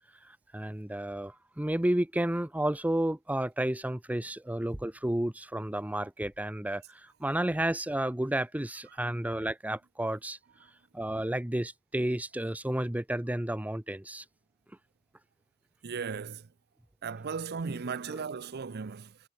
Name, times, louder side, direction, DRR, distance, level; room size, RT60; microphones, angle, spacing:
voice 1, 0.2-10.4 10.9-14.2 17.7-17.8 18.1-18.2, right 1 dB, 5° right, 0.6 m, -31 dB
voice 2, 15.8-16.5 17.0-19.2, right 5 dB, 50° right, 0.5 m, -36 dB
head